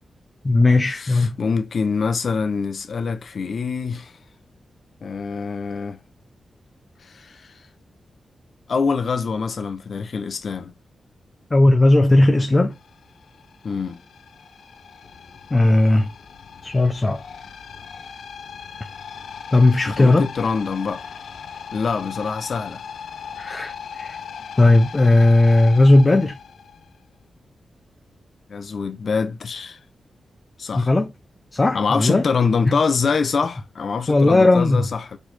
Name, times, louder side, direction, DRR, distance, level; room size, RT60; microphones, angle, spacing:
voice 1, 0.4-1.4 11.5-12.8 15.5-16.1 16.6-17.2 19.5-20.3 23.4-24.2 24.6-26.4 30.8-31.1 31.5-32.2 32.7-32.8 34.1-34.9, left 2 dB, 25° left, 0.7 m, -16 dB
voice 2, 0.9-4.1 5.0-6.0 7.0-7.5 8.7-10.7 13.6-14.0 19.9-21.0 21.7-22.8 28.5-29.8 30.6-30.9 31.7-35.2, left 5 dB, 60° left, 0.9 m, -25 dB
sound 1, 12.7-27.3, left 6 dB, 90° left, 0.7 m, -38 dB
5.0 x 4.5 x 4.2 m
wide cardioid pair, 105°, 0 cm